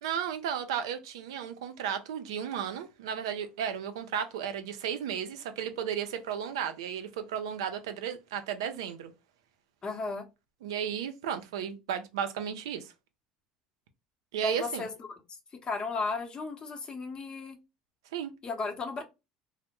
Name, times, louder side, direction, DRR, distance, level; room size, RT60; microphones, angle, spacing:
voice 1, 0.0-9.1 10.6-12.9 14.3-14.8 18.1-18.3, right 8 dB, 85° right, 0.4 m, -34 dB
voice 2, 9.8-10.2 14.4-14.9 15.6-17.6 18.4-19.0, left 4 dB, 35° left, 0.7 m, -34 dB
2.1 x 2.0 x 2.9 m
hypercardioid pair, 85°, 3 cm